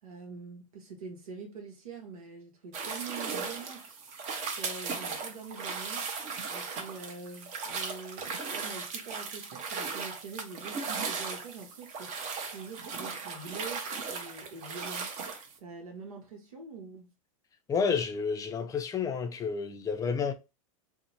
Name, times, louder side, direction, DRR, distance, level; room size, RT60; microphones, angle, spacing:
voice 1, 0.0-4.0 4.5-6.1 6.5-12.2 12.4-15.1 15.6-17.1, right 4 dB, 90° right, 0.8 m, -45 dB
sound 1, 2.7-15.5, right 5 dB, 40° right, 0.7 m, -37 dB
voice 2, 17.7-20.3, left 5 dB, 20° left, 0.4 m, -30 dB
2.6 x 2.0 x 2.9 m
hypercardioid pair, 110°, 18 cm